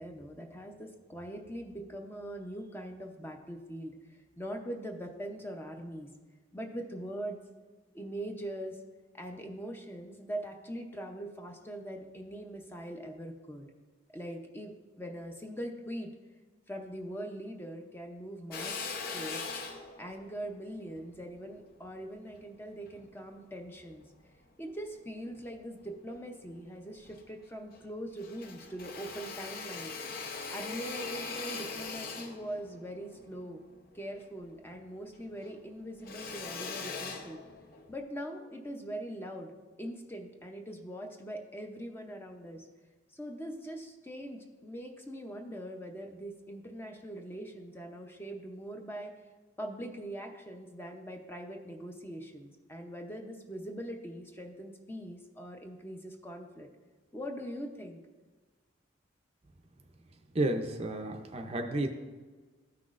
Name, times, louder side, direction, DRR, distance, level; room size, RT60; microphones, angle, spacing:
voice 1, 0.0-6.1 6.5-7.4 7.9-8.8 9.1-13.7 14.1-16.1 16.7-18.7 19.1-19.4 20.0-24.0 24.6-30.0 30.5-33.6 33.9-37.4 37.9-39.5 39.8-42.7 43.1-49.1 49.6-56.7 57.1-58.0, right 1 dB, 10° left, 3 dB, 0.6 m, -42 dB
Drill, 18.5-23.0 23.6-24.8 25.2-26.2 26.5-26.6 26.9-27.9 28.1-34.8 35.1-38.0, left 4 dB, 50° left, 0.7 m, -42 dB
voice 2, 60.3-61.9, right 1 dB, 30° right, 5 dB, 0.5 m, -31 dB
13.5 x 5.9 x 2.5 m, 1.3 s
head